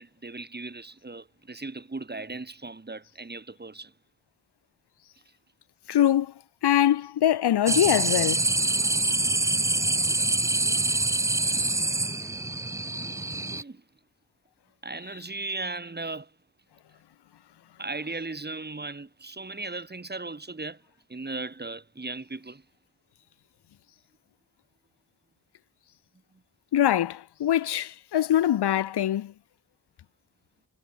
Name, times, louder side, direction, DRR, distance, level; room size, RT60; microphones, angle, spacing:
voice 1, 0.0-3.9 13.1-13.8 14.8-16.3 17.8-20.8 21.1-22.6 26.3-26.4, right 3 dB, 25° right, 1.9 m, -37 dB
voice 2, 5.9-6.3 6.6-8.5 26.7-29.3, left 11 dB, 80° left, 0.9 m, -23 dB
sound 1, 7.7-13.6, right 2 dB, 10° right, 0.4 m, -25 dB
cardioid pair, 50°, 39 cm